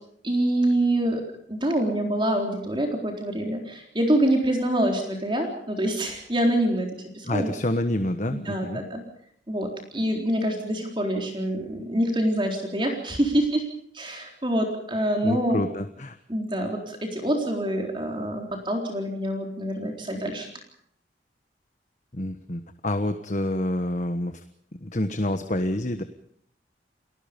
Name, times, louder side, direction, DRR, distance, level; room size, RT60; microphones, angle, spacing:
voice 1, 0.2-1.2 1.5-6.9 7.1-7.5 8.3-9.0 9.5-13.6 13.9-15.6 16.3-20.5, right 1 dB, 25° right, 2 dB, 4.0 m, -26 dB
voice 2, 7.2-8.8 15.2-16.2 22.1-24.4 24.8-26.0, left 1 dB, 40° left, 8 dB, 1.3 m, -27 dB
29.5 x 19.5 x 5.3 m, 0.67 s
head